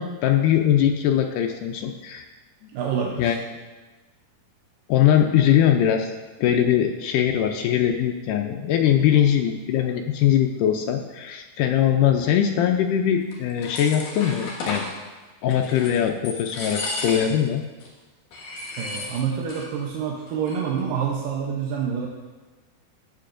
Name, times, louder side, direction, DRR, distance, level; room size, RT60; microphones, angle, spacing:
voice 1, 0.0-2.2 3.2-3.4 4.9-6.1 6.4-14.8 15.4-17.6, left 10 dB, 80° left, 3 dB, 1.9 m, -21 dB
voice 2, 2.7-3.4 18.8-22.1, right 7 dB, 75° right, -2 dB, 2.3 m, -27 dB
sound 1, 13.3-14.9 15.5-16.0 16.2-17.5 17.8-17.9 18.3-19.7 19.9-20.0 20.3-20.8, left 2 dB, 65° left, 3.2 m, -33 dB
13.0 x 9.0 x 2.6 m, 1.2 s
omnidirectional pair, 4.2 m